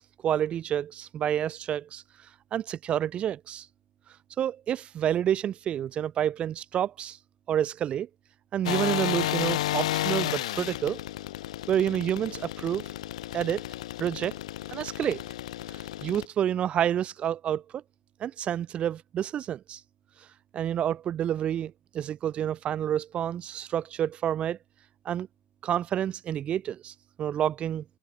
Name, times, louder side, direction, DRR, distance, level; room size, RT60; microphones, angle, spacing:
voice 1, 0.0-2.0 2.5-3.7 4.4-7.2 7.5-8.1 8.5-11.0 11.7-12.9 13.3-13.6 14.0-14.3 14.7-15.2 15.7-17.6 18.2-19.8 20.5-24.6 25.1-25.3 25.6-27.8, right 10 dB, 35° right, 1.8 m, -29 dB
sound 1, 8.6-16.2, left 14 dB, 90° left, 0.9 m, -32 dB
supercardioid pair, 125°, 3 cm